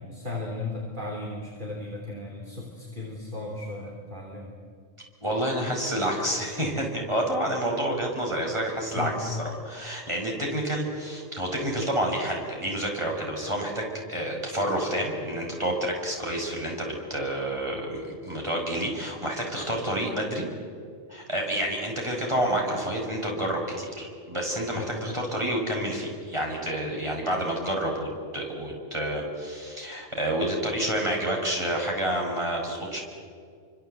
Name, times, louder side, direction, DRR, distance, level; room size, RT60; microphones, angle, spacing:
voice 1, 0.0-4.5 8.9-9.2 24.7-25.0, left 2 dB, 35° right, -2 dB, 3.5 m, -35 dB
voice 2, 5.2-9.4 9.6-20.5 21.1-33.0, right 1 dB, 20° right, 0 dB, 5.7 m, -29 dB
28.5 x 25.5 x 8.0 m, 2.2 s
omnidirectional pair, 1.4 m